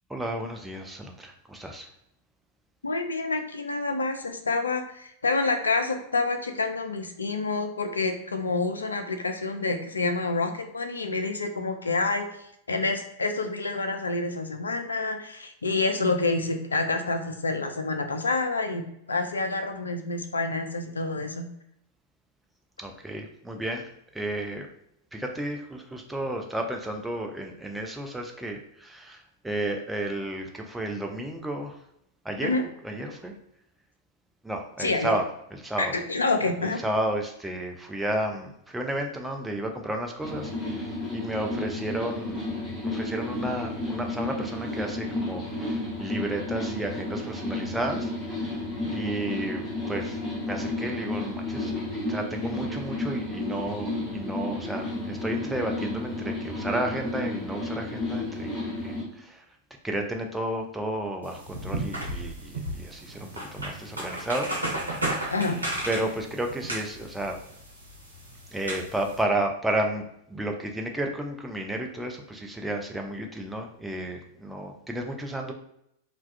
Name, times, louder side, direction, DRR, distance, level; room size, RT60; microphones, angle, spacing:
voice 1, 0.1-1.9 22.8-23.8 24.1-24.7 25.1-29.2 29.4-31.8 32.3-32.6 32.8-33.3 34.4-35.2 35.5-36.0 36.6-42.4 42.8-48.1 48.9-50.2 50.5-51.8 52.1-59.4 59.8-64.9 65.9-67.4 68.5-70.0 70.3-75.5, right 1 dB, 5° right, 2 dB, 0.3 m, -32 dB
voice 2, 2.8-12.3 12.7-21.5 32.4-32.6 34.8-35.2 35.8-36.8 65.3-65.6, left 3 dB, 80° left, 6 dB, 0.3 m, -28 dB
sound 1, 40.2-59.0, left 2 dB, 10° left, 1.0 m, -32 dB
sound 2, 61.2-69.2, right 1 dB, 85° right, 0.6 m, -34 dB
2.2 x 2.2 x 2.5 m, 0.74 s
figure-of-eight pair, 95°, 0 cm